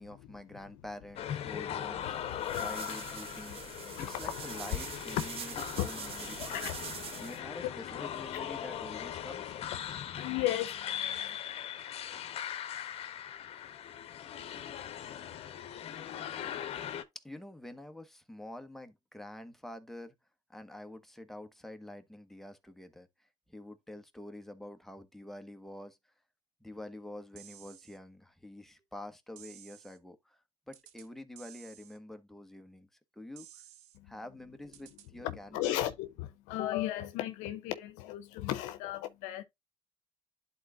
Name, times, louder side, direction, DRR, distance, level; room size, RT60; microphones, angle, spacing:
voice 1, 0.0-3.6 4.0-6.7 7.2-9.6 17.2-20.1 20.5-26.0 26.6-30.4 30.7-33.5 34.0-35.9, left 1 dB, ahead, 1.3 m, -47 dB
sound 1, 1.2-17.0, left 10 dB, 55° left, 0.9 m, -40 dB
sound 2, 2.0-7.4, right 9 dB, 55° right, 0.8 m, -44 dB
voice 2, 3.9-4.3 5.8-5.9 6.4-6.7 7.0-7.1 9.8-11.4 34.0-34.1 35.2-39.4, left 14 dB, 85° left, 0.7 m, -35 dB
sound 3, 27.4-28.0 29.4-30.0 30.7-31.1 31.4-32.0 33.4-34.0 34.7-35.1, right 11 dB, 80° right, 1.0 m, -54 dB
11.5 x 4.2 x 2.5 m
supercardioid pair, 90°, 12 cm